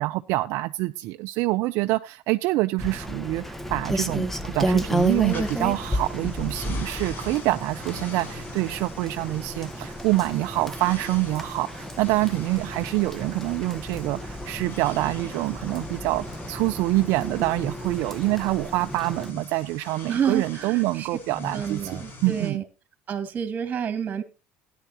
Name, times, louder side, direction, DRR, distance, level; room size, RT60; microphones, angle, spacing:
voice 1, 0.0-22.6, right 19 dB, 70° right, 0.5 m, -26 dB
Rain, 2.8-19.3, equal, 5° left, 1.1 m, -32 dB
sound 1, 5.0-22.5, left 2 dB, 45° left, 6.2 m, -44 dB
voice 2, 20.1-21.1 21.5-22.6 23.1-24.2, right 7 dB, 40° right, 2.0 m, -29 dB
13.5 x 10.0 x 2.9 m
supercardioid pair, 110°, 5 cm